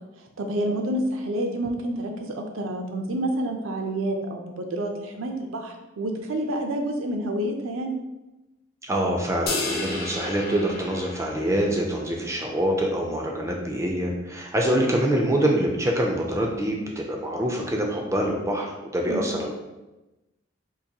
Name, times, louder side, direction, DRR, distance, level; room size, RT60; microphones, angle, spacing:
voice 1, 0.4-7.9 14.7-14.9 19.1-19.4, right 1 dB, 85° right, 3 dB, 0.5 m, -28 dB
voice 2, 8.8-19.5, right 1 dB, 15° right, 0 dB, 0.3 m, -25 dB
sound 1, 9.5-12.0, left 3 dB, 50° left, 0.6 m, -32 dB
3.9 x 2.5 x 2.8 m, 1.0 s
head